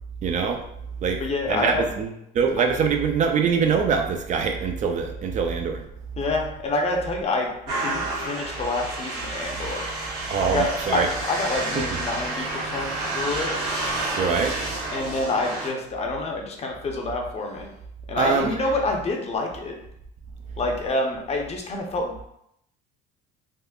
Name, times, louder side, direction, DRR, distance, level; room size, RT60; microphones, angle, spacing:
voice 1, 0.2-0.6 1.0-1.2 1.5-5.8 10.3-11.1 14.2-14.5 18.2-18.5, right 6 dB, 40° right, 4 dB, 0.4 m, -23 dB
voice 2, 1.2-1.9 6.2-9.9 10.5-13.5 14.9-17.7 18.1-19.7 20.6-22.1, left 2 dB, 35° left, 1 dB, 0.6 m, -27 dB
sound 1, 7.7-15.7, right 2 dB, 70° right, 1.4 m, -30 dB
3.5 x 2.1 x 2.3 m, 0.76 s
supercardioid pair, 100°, 19 cm